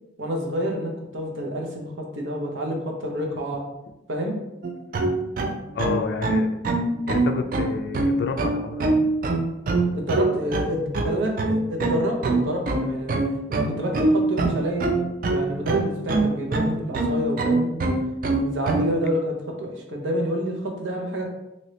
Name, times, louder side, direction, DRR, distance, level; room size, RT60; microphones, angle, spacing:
voice 1, 0.2-3.6 4.1-4.4 9.9-13.2 13.5-14.9 15.3-17.9 18.3-21.3, equal, 85° right, 0 dB, 0.7 m, -28 dB
sound 1, 4.6-18.9, right 2 dB, 50° right, 0.3 m, -23 dB
voice 2, 5.7-6.5 7.1-9.1, left 4 dB, 60° left, 6 dB, 0.3 m, -29 dB
3.0 x 2.9 x 2.8 m, 0.91 s
head